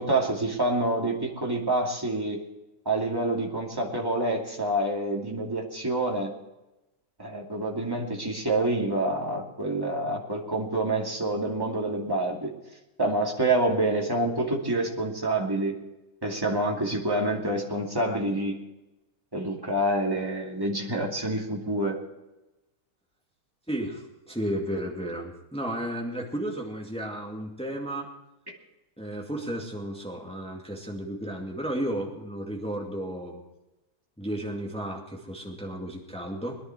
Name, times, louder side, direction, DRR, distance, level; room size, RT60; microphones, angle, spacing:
voice 1, 0.0-2.4 2.9-6.3 7.2-12.5 13.0-15.8 16.2-18.6 19.3-22.0 28.5-28.6, right 2 dB, 10° right, -1 dB, 2.6 m, -27 dB
voice 2, 23.7-28.1 29.0-33.4 34.2-36.6, right 1 dB, 5° left, -1 dB, 2.2 m, -33 dB
21.5 x 11.0 x 4.6 m, 0.97 s
omnidirectional pair, 1.9 m